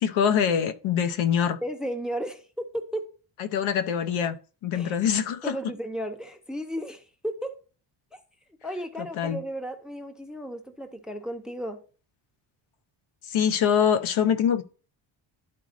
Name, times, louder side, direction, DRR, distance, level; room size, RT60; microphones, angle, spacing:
voice 1, 0.0-1.6 3.4-4.4 4.6-5.5 9.2-9.4 13.3-14.6, left 8 dB, 80° left, 0.9 m, -24 dB
voice 2, 1.6-3.1 4.7-5.0 5.4-7.5 8.1-8.2 8.6-11.8, equal, ahead, 0.5 m, -34 dB
12.0 x 4.1 x 2.5 m
cardioid pair, 170°, 48 cm